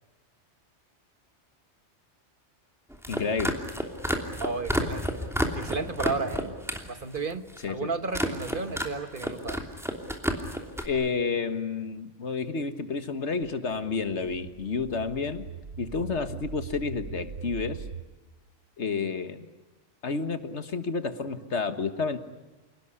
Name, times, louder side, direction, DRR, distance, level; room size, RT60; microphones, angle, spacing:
sound 1, 2.9-6.9 7.2-7.7 8.1-8.9 9.2-10.9, equal, ahead, 3.0 m, -30 dB
voice 1, 3.1-3.6 7.6-7.9 10.8-15.5 15.8-17.8 18.8-19.5 20.0-22.2, left 4 dB, 75° left, 10 dB, 1.8 m, -30 dB
voice 2, 4.4-5.1 5.5-6.6 6.9-9.6, right 4 dB, 50° right, 10 dB, 1.4 m, -33 dB
sound 2, 13.3-18.1, right 6 dB, 85° right, 1.4 m, -41 dB
28.5 x 19.0 x 9.8 m, 1.1 s
omnidirectional pair, 1.2 m